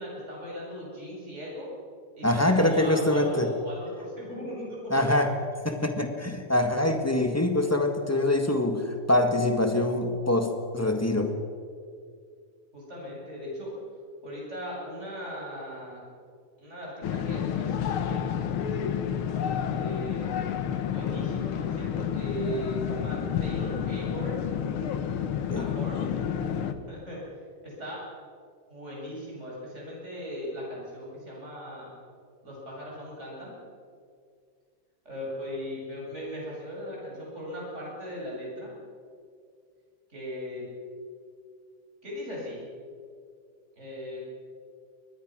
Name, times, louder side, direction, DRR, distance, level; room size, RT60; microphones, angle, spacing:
voice 1, 0.0-1.7 2.2-5.1 12.7-13.8 14.2-16.0 16.6-18.4 19.7-20.5 20.9-24.4 25.6-26.1 26.9-27.3 27.6-28.1 28.7-31.9 32.4-33.5 35.0-38.7 40.1-40.7 42.0-42.7 43.8-44.2, equal, 20° right, -4 dB, 8.2 m, -38 dB
voice 2, 2.2-3.5 4.9-5.4 5.6-11.3 25.5-25.7, left 1 dB, 10° left, 5 dB, 0.7 m, -24 dB
sound 1, 17.0-26.7, left 8 dB, 60° left, 1.5 m, -30 dB
23.0 x 20.0 x 6.3 m, 2.2 s
omnidirectional pair, 3.4 m